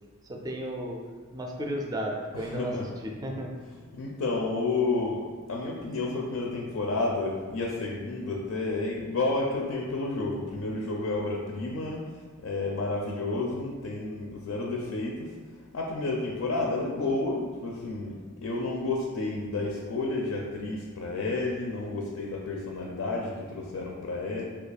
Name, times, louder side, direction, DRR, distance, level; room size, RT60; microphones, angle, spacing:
voice 1, 0.2-1.0 1.3-3.5, equal, 20° right, 0 dB, 0.3 m, -34 dB
voice 2, 2.5-2.8 3.9-5.2 5.5-12.1 12.4-15.4 15.7-24.4, left 3 dB, 80° left, -1 dB, 0.4 m, -31 dB
2.8 x 2.3 x 4.0 m, 1.4 s
head